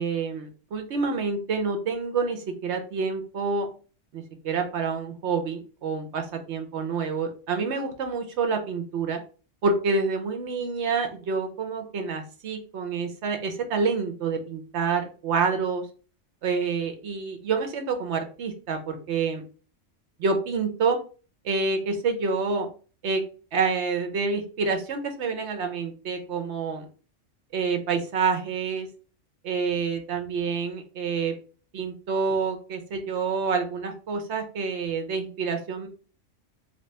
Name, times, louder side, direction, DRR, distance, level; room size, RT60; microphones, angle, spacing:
voice 1, 0.0-3.7 4.1-9.2 9.6-15.9 16.4-19.4 20.2-21.0 21.4-22.7 23.0-23.2 23.5-26.8 27.5-28.9 29.4-31.3 31.7-35.9, right 4 dB, 65° right, 5 dB, 0.9 m, -27 dB
3.0 x 2.9 x 3.2 m, 0.37 s
omnidirectional pair, 1.3 m